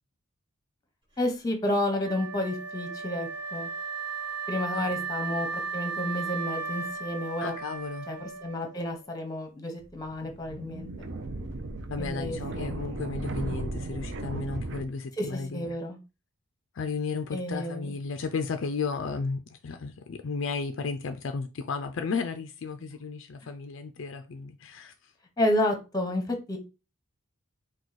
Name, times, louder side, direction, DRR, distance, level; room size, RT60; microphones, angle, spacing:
voice 1, 1.2-3.7 4.5-7.5 8.1-11.1 12.0-12.8 15.2-16.0 17.3-18.0 25.4-26.6, left 1 dB, 15° left, 0.8 m, -31 dB
Wind instrument woodwind instrument, 2.0-9.0, right 4 dB, 20° right, 1.2 m, -35 dB
voice 2, 4.7-5.1 7.4-8.1 11.9-15.8 16.7-25.1, left 4 dB, 55° left, 0.4 m, -34 dB
sound 1, 9.8-14.8, right 2 dB, 50° right, 0.5 m, -36 dB
4.6 x 2.3 x 4.0 m
head